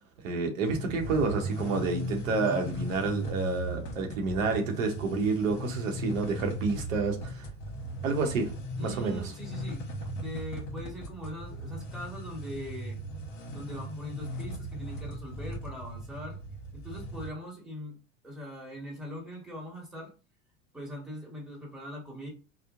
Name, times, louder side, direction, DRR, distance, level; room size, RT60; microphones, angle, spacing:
voice 1, 0.2-7.5 8.0-8.5 8.8-9.3, right 4 dB, 85° right, 0.7 m, -29 dB
sound 1, 0.7-17.3, right 1 dB, 55° left, 0.9 m, -38 dB
voice 2, 8.8-9.9 10.2-13.0 13.5-16.4 16.7-18.0 18.2-20.1 20.7-22.3, equal, ahead, 1.2 m, -41 dB
2.8 x 2.0 x 2.4 m
hypercardioid pair, 90°, 39 cm